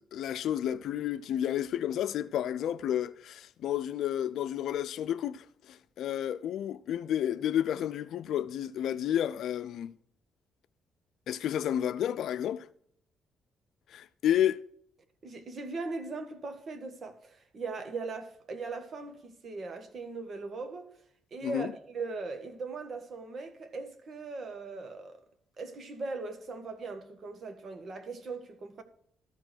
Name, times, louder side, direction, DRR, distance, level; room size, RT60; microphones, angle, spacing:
voice 1, 0.0-9.9 11.3-12.6 13.9-14.6 21.4-21.7, left 10 dB, 75° left, 0.5 m, -31 dB
voice 2, 15.2-20.9 21.3-25.2 25.6-28.8, right 3 dB, 50° right, 1.7 m, -39 dB
13.5 x 5.3 x 6.3 m
cardioid pair, 90°, 0 cm